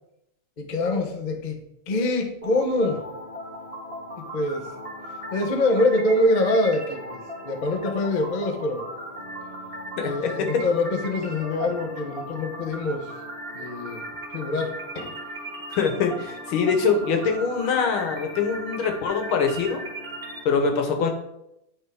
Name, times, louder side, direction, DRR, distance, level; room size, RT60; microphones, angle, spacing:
voice 1, 0.6-1.6 1.9-3.0 4.2-4.7 5.3-7.2 7.4-8.9 10.0-13.1 13.5-14.1 14.3-15.2, left 2 dB, 60° left, 3 dB, 0.4 m, -25 dB
sound 1, 2.4-20.4, right 1 dB, 30° right, 1.2 m, -37 dB
voice 2, 15.7-19.8 20.5-21.1, left 5 dB, 75° left, 5 dB, 1.9 m, -23 dB
9.6 x 3.7 x 4.8 m, 0.82 s
omnidirectional pair, 2.3 m